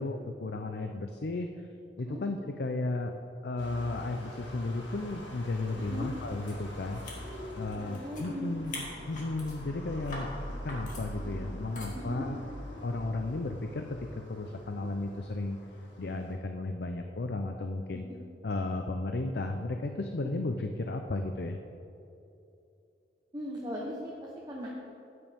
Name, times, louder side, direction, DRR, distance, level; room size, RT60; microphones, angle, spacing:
voice 1, 0.0-1.5 2.0-3.1 3.4-7.0 7.6-10.3 10.6-12.4 12.8-15.6 16.0-18.1 18.4-21.6, left 2 dB, 60° left, 5 dB, 0.6 m, -34 dB
sound 1, 3.6-16.3, equal, 90° left, 2.1 m, -44 dB
voice 2, 5.7-6.1 7.2-7.4 7.8-8.5 11.9-12.3 23.3-24.7, equal, 25° right, -4 dB, 1.1 m, -38 dB
sound 2, 6.5-6.6 6.9-8.3 8.6-9.6 10.0-10.3 10.7-11.0 11.8-12.0, left 2 dB, 45° left, 2.3 m, -43 dB
14.0 x 9.6 x 3.6 m, 2.8 s
head